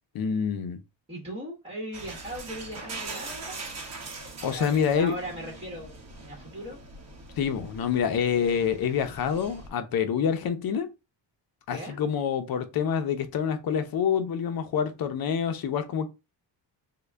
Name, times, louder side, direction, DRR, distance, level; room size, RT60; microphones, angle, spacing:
voice 1, 0.1-0.8 4.4-5.1 7.4-10.9 11.7-16.1, left 7 dB, 55° left, 0.6 m, -27 dB
voice 2, 1.1-3.6 4.4-6.8 11.7-12.0, right 1 dB, 15° right, 1.1 m, -39 dB
sound 1, 1.9-9.7, right 3 dB, 35° right, 0.9 m, -42 dB
3.8 x 2.2 x 3.3 m
cardioid pair, 145°, 45 cm